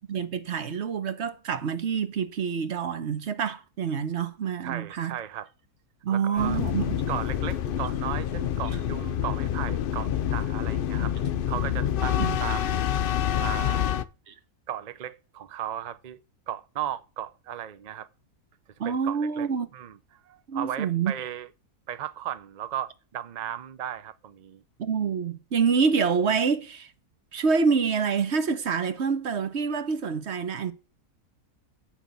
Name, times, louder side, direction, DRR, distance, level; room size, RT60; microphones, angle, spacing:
voice 1, 0.1-5.2 6.0-7.0 12.2-12.4 14.3-14.4 18.8-19.7 20.5-21.1 24.8-26.9 27.3-30.7, right 6 dB, 50° right, 1.1 m, -27 dB
voice 2, 4.6-5.5 6.1-6.6 7.1-11.1 11.5-12.9 13.4-13.9 14.7-16.2 16.5-18.1 18.8-19.5 19.7-20.0 20.2-21.5 21.9-24.6, right 10 dB, 75° right, 0.4 m, -36 dB
sound 1, 6.4-14.0, left 10 dB, 75° left, 0.5 m, -27 dB
8.2 x 5.9 x 8.0 m
omnidirectional pair, 1.6 m